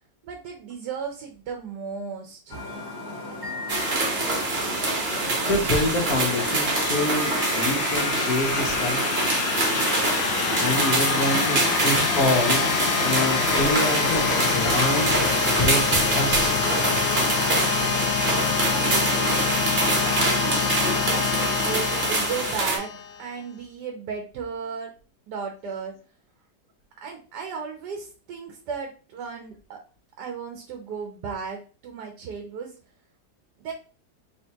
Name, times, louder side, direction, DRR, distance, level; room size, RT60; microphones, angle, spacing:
voice 1, 0.2-2.6 4.4-4.5 10.5-10.7 11.2-11.7 17.8-18.4 18.7-19.5 20.1-22.9 23.2-24.9 25.3-25.9 27.0-29.8 30.2-32.7 33.6-33.7, right 6 dB, 75° right, 3 dB, 1.3 m, -35 dB
sound 1, 2.5-14.8, left 1 dB, 15° left, 1.4 m, -35 dB
sound 2, 3.7-22.8, right 2 dB, 40° right, 1.0 m, -25 dB
voice 2, 5.4-9.0 10.6-15.1 15.5-15.8 16.1-16.6, left 1 dB, 60° left, 1 dB, 1.4 m, -27 dB
sound 3, 5.7-23.3, left 8 dB, 90° left, 1.3 m, -27 dB
4.4 x 3.2 x 2.9 m, 0.38 s
omnidirectional pair, 1.9 m